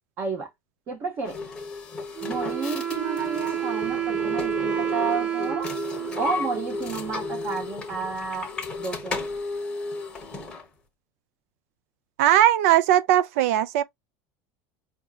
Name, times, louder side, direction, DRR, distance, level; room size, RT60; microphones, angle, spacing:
voice 1, 0.2-0.5 0.9-1.4 2.2-5.7 6.2-8.5 8.8-9.2, right 4 dB, 30° right, 0.7 m, -31 dB
sound 1, 1.2-10.7, left 4 dB, 10° left, 0.8 m, -34 dB
Wind instrument woodwind instrument, 2.2-7.7, right 10 dB, 15° right, 0.4 m, -30 dB
voice 2, 12.2-13.8, right 12 dB, 85° right, 0.4 m, -19 dB
4.9 x 2.7 x 2.3 m
cardioid pair, 180°, 8 cm